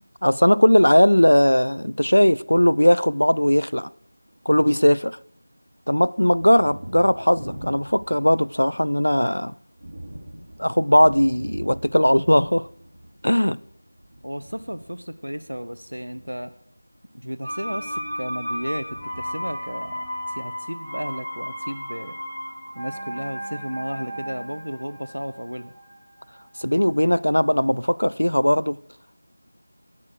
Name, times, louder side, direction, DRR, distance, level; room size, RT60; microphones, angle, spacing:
voice 1, 0.0-3.9 4.5-5.2 5.9-9.5 10.6-12.7 13.2-13.6 26.6-28.8, equal, 75° left, 0.4 m, -18 dB
Thunder, 4.1-5.3 5.6-20.9, equal, 50° right, 4.3 m, -43 dB
voice 2, 14.2-16.5 17.1-18.9 19.2-20.0 20.3-22.1 22.7-25.7, equal, 80° right, 0.9 m, -33 dB
sound 1, 17.4-27.1 27.4-27.5, equal, 5° right, 3.1 m, -34 dB
11.0 x 6.4 x 7.6 m
figure-of-eight pair, 170°, 0 cm